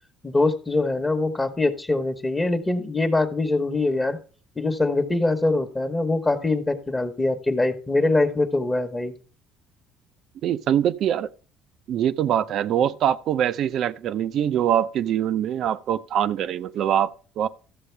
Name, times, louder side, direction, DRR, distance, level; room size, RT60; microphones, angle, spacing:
voice 1, 0.2-4.2 4.6-9.1, left 2 dB, 20° left, 1.1 m, -23 dB
voice 2, 10.4-11.3 11.9-17.1 17.4-17.5, right 10 dB, 60° right, 0.6 m, -23 dB
13.0 x 7.5 x 3.3 m
supercardioid pair, 95°, 0 cm